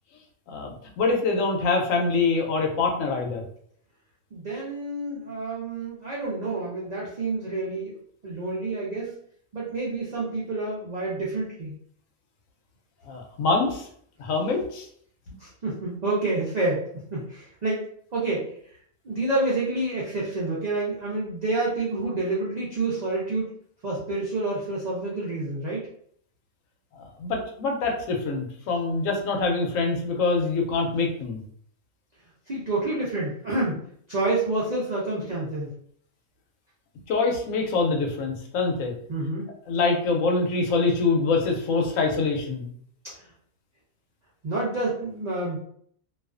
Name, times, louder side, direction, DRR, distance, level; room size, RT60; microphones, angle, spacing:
voice 1, 0.5-3.4 13.1-13.9 14.2-14.9 27.2-31.4 37.1-38.9 39.7-42.7, left 3 dB, 75° left, 1 dB, 0.9 m, -25 dB
voice 2, 4.3-8.0 8.2-9.2 9.5-11.7 15.4-17.8 18.1-18.6 19.0-23.5 23.8-25.9 32.5-35.7 39.1-39.5 43.0-43.3 44.4-45.6, right 2 dB, 85° right, -6 dB, 0.3 m, -28 dB
2.4 x 2.3 x 2.3 m, 0.63 s
omnidirectional pair, 1.5 m